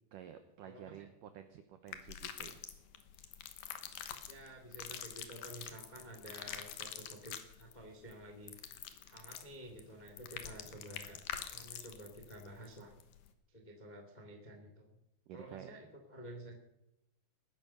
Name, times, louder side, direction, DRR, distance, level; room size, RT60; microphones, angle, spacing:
voice 1, 0.1-2.6 15.3-15.8, right 9 dB, 85° right, 8 dB, 1.9 m, -51 dB
voice 2, 0.6-1.1 4.2-8.5 9.0-11.2 11.5-12.9 13.5-15.0 15.3-16.5, right 1 dB, 30° left, 3 dB, 0.7 m, -51 dB
sound 1, 1.9-13.3, left 10 dB, 65° left, 2.4 m, -47 dB
20.0 x 10.0 x 6.8 m, 0.85 s
omnidirectional pair, 5.1 m